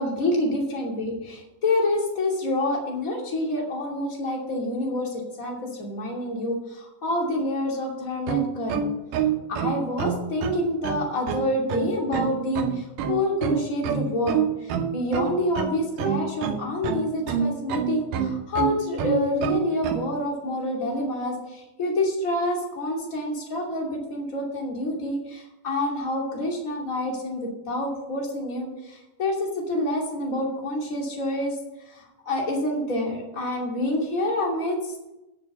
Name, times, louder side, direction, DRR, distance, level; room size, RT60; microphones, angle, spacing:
voice 1, 0.0-8.9 9.1-9.2 9.5-31.6 31.9-35.1, left 1 dB, 25° left, -1 dB, 2.7 m, -27 dB
sound 1, 8.2-20.1, right 7 dB, 75° right, 2.4 m, -27 dB
9.7 x 6.8 x 8.1 m, 0.94 s
omnidirectional pair, 4.0 m